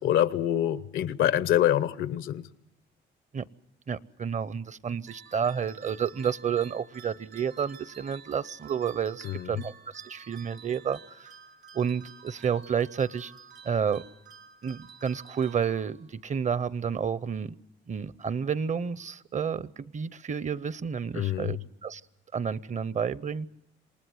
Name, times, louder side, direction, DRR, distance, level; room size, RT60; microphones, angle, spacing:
voice 1, 0.0-2.4 9.2-9.5 21.2-21.5, left 11 dB, 85° left, 0.9 m, -25 dB
voice 2, 3.9-11.3 11.7-13.3 13.6-14.0 14.6-17.6 17.9-22.0 22.3-23.5, right 7 dB, 35° right, 0.8 m, -30 dB
sound 1, 5.1-16.3, right 6 dB, 70° right, 3.1 m, -51 dB
27.5 x 19.0 x 7.9 m
cardioid pair, 90°, 20 cm